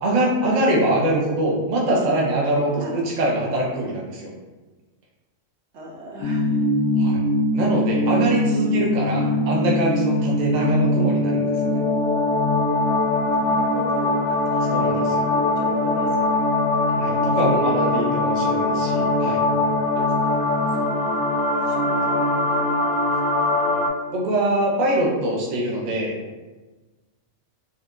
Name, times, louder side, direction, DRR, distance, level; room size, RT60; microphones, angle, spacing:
voice 1, 0.0-4.3 7.0-7.2 7.5-11.7 14.7-14.9 16.9-19.4 24.1-26.2, right 1 dB, 45° right, -2 dB, 0.6 m, -23 dB
voice 2, 5.7-6.6 8.5-8.8 9.1-9.5 10.5-10.8 13.3-15.0 15.3-16.4 17.1-18.0 20.0-20.4 20.7-21.2 21.6-23.5, right 2 dB, 65° right, -1 dB, 0.9 m, -36 dB
sound 1, 6.2-23.9, left 2 dB, 60° left, 0.6 m, -22 dB
4.4 x 2.2 x 2.5 m, 1.2 s
omnidirectional pair, 1.3 m